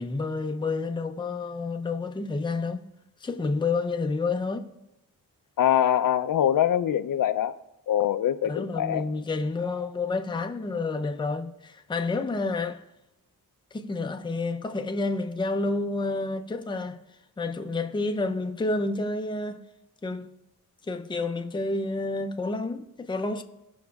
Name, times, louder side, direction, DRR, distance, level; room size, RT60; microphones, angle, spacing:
voice 1, 0.0-2.8 3.2-4.7 8.4-12.8 13.7-17.0 17.4-19.6 20.0-20.3 20.9-23.4, left 3 dB, 15° left, 0.5 m, -29 dB
voice 2, 5.6-7.5 7.9-9.0, left 10 dB, 65° left, 0.5 m, -23 dB
17.5 x 6.1 x 2.3 m
wide cardioid pair, 130°, 35 cm